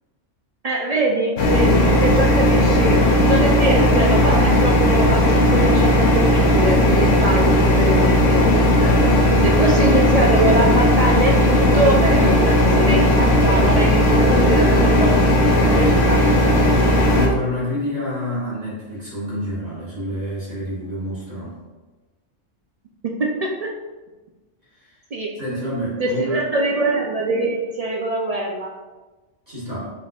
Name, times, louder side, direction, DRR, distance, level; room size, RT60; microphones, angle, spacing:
voice 1, 0.6-8.5 9.4-15.1 15.6-16.2 23.0-23.7 25.1-25.3 26.0-28.7, right 2 dB, 65° right, -2 dB, 0.3 m, -23 dB
sound 1, 1.4-17.3, left 1 dB, 75° left, 1.1 m, -16 dB
voice 2, 8.8-9.6 12.2-12.4 15.9-16.1 17.0-21.6 24.8-24.9 25.4-26.5 29.5-29.9, left 1 dB, 35° right, -9 dB, 1.6 m, -28 dB
Bowed string instrument, 14.1-17.5, equal, 45° left, 0.6 m, -31 dB
5.3 x 3.9 x 2.3 m, 1.2 s
omnidirectional pair, 1.3 m